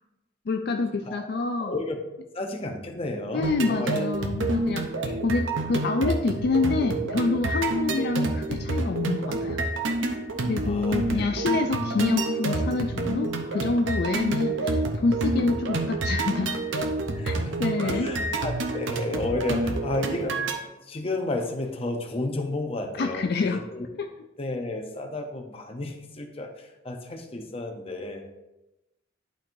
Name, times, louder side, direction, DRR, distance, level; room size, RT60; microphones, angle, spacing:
voice 1, 0.5-1.7 3.3-4.8 5.2-9.6 10.4-16.6 17.2-18.1 23.0-23.6, left 3 dB, 55° left, 4 dB, 0.4 m, -27 dB
voice 2, 1.6-2.0 2.3-4.1 4.9-5.2 10.6-11.3 11.7-11.8 17.1-17.6 17.8-20.4 20.8-23.9 24.4-28.3, left 2 dB, 30° left, 4 dB, 0.8 m, -32 dB
sound 1, 3.4-20.6, right 2 dB, 80° right, 0.8 m, -28 dB
11.0 x 4.5 x 2.6 m, 0.97 s
head